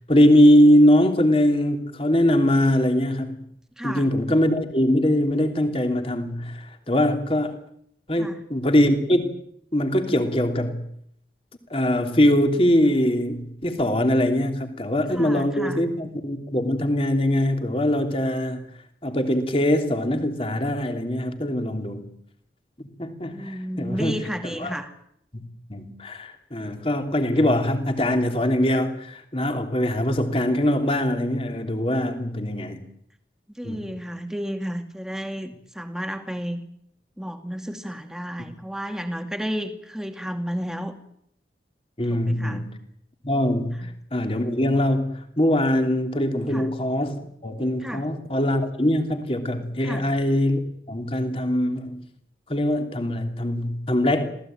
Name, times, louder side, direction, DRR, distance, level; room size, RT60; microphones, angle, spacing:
voice 1, 0.1-3.4 3.8-7.6 8.1-9.3 9.7-10.8 11.7-18.6 19.0-22.1 23.0-24.1 24.6-24.7 25.3-25.4 25.7-32.8 33.6-33.9 42.0-42.7 43.2-50.6 50.9-52.0 52.5-54.3, left 1 dB, 30° left, 6 dB, 3.1 m, -22 dB
voice 2, 3.8-4.1 8.2-8.4 15.1-15.9 23.3-24.9 33.6-36.6 37.2-40.9 42.1-42.7 43.8-43.9 46.5-46.7 47.8-48.1 49.8-50.1, equal, 5° right, 6 dB, 2.3 m, -32 dB
26.5 x 18.0 x 9.2 m, 0.70 s
head